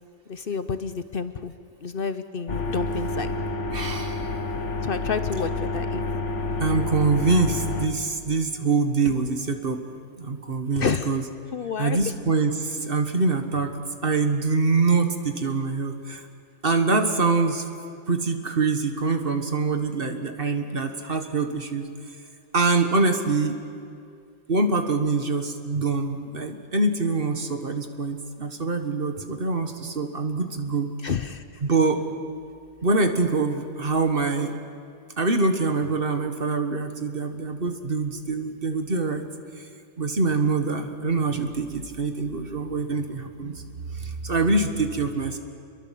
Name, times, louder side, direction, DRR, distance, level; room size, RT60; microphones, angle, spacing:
voice 1, 0.3-1.5 1.8-3.3 4.8-6.0 10.8-11.1 11.5-12.0 31.0-31.4, left 5 dB, 55° left, 11 dB, 0.9 m, -29 dB
sound 1, 2.5-7.9, left 3 dB, 80° left, 1.7 m, -29 dB
voice 2, 3.7-4.4 6.6-9.8 10.2-11.2 11.8-16.3 16.6-17.7 18.1-21.9 22.5-23.6 24.5-30.9 31.6-32.0 32.8-34.6 35.2-39.3 39.6-39.7 40.0-43.6 43.9-45.4, right 3 dB, 50° right, 7 dB, 1.8 m, -24 dB
27.0 x 22.5 x 7.6 m, 2.3 s
omnidirectional pair, 1.2 m